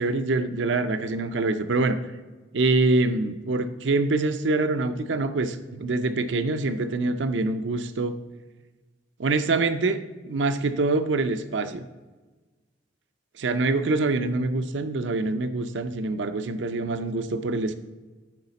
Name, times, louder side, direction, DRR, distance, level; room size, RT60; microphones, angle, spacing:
voice 1, 0.0-2.0 2.5-8.1 9.2-11.9 13.4-17.7, right 3 dB, 85° right, 10 dB, 0.5 m, -25 dB
11.0 x 4.9 x 4.0 m, 1.2 s
head